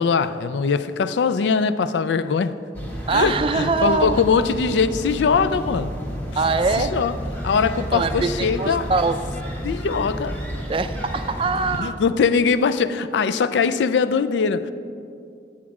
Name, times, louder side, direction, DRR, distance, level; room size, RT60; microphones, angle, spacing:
voice 1, 0.0-2.5 3.1-5.9 6.8-7.1 7.4-8.9 9.6-10.4 11.8-14.7, left 5 dB, 90° left, 0.4 m, -21 dB
sound 1, 2.7-11.8, equal, 10° left, 1.0 m, -31 dB
voice 2, 3.1-4.2 6.4-6.9 7.5-9.2 10.7-12.0, right 4 dB, 30° right, 0.3 m, -23 dB
9.3 x 7.2 x 4.8 m
head